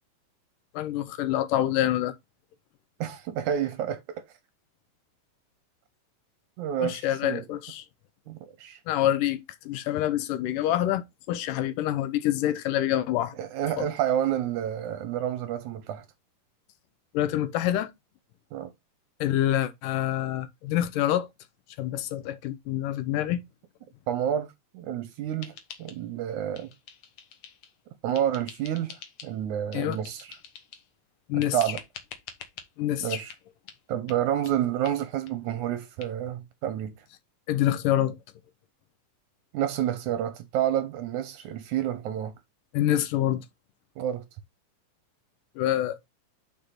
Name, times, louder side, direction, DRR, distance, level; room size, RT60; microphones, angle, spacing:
voice 1, 0.7-2.1 6.8-7.8 8.9-9.4 9.7-13.4 13.8-13.9 17.1-17.9 19.2-21.3 21.8-23.4 29.7-30.0 31.3-31.6 32.8-33.2 37.5-38.2 42.7-43.4 45.6-46.1, left 12 dB, 80° left, 2.2 m, -26 dB
voice 2, 3.0-4.2 6.6-7.4 8.3-8.8 13.4-16.1 18.5-18.7 24.1-26.7 28.0-29.0 29.2-30.4 31.5-31.8 33.0-33.3 33.9-36.9 39.5-42.3 44.0-44.2, right 10 dB, 75° right, 1.9 m, -29 dB
sound 1, 25.4-26.3 26.5-27.8 28.1-29.4 29.7-30.9 31.4-32.7 33.3-33.4 33.7-33.8 34.1-34.2 34.5-34.6 34.8-35.0 35.3-35.4 35.6-35.7 36.0-36.1, left 7 dB, 60° left, 2.0 m, -46 dB
5.2 x 5.1 x 5.7 m
omnidirectional pair, 4.0 m